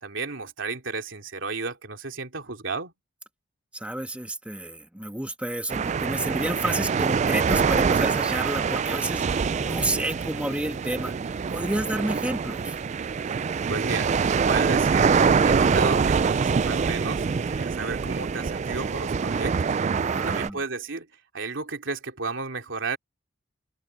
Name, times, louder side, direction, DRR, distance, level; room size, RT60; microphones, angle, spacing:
voice 1, 0.0-2.9 13.7-14.1 14.4-19.8 20.1-21.1 21.3-23.0, right 4 dB, 80° right, 2.8 m, -33 dB
voice 2, 3.7-12.8 19.9-20.6, right 1 dB, 5° right, 1.5 m, -31 dB
sound 1, 5.7-20.5, right 5 dB, 35° right, 0.3 m, -24 dB
head